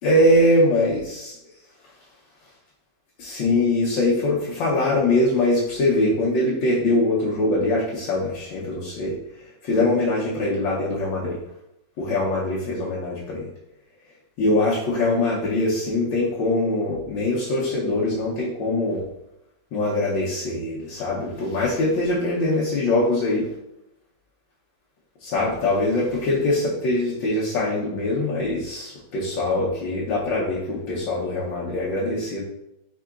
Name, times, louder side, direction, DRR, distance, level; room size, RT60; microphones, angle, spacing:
voice 1, 0.0-1.4 3.2-9.1 9.6-11.4 12.0-13.4 14.4-19.0 19.7-23.5 25.2-32.4, left 2 dB, 75° left, -5 dB, 1.5 m, -22 dB
4.7 x 3.7 x 2.3 m, 0.85 s
omnidirectional pair, 2.1 m